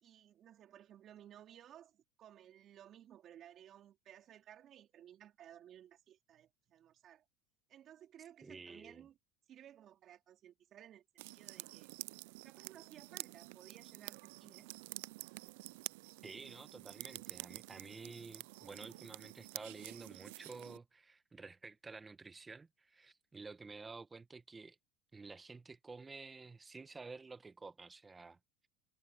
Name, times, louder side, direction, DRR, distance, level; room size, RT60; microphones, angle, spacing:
voice 1, 0.0-7.2 7.7-9.2 9.5-11.9 12.4-14.7, right 11 dB, 40° right, 3.8 m, -58 dB
voice 2, 8.4-9.0 16.2-24.8 25.1-28.4, right 4 dB, 15° right, 1.0 m, -51 dB
sound 1, 11.2-20.8, right 23 dB, 75° right, 0.3 m, -49 dB
supercardioid pair, 130°, 0 cm